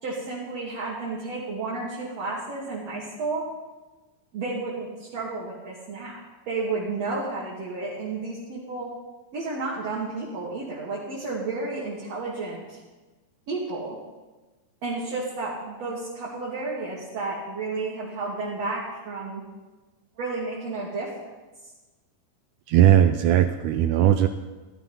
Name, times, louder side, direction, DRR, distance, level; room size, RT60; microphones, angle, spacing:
voice 1, 0.0-3.5 4.3-6.2 6.5-8.9 9.3-12.8 13.5-14.0 14.8-19.4 20.2-21.1, right 3 dB, 50° right, -6 dB, 3.3 m, -32 dB
voice 2, 22.7-24.3, right 11 dB, 80° right, 9 dB, 1.8 m, -18 dB
16.0 x 13.0 x 5.6 m, 1.2 s
omnidirectional pair, 4.0 m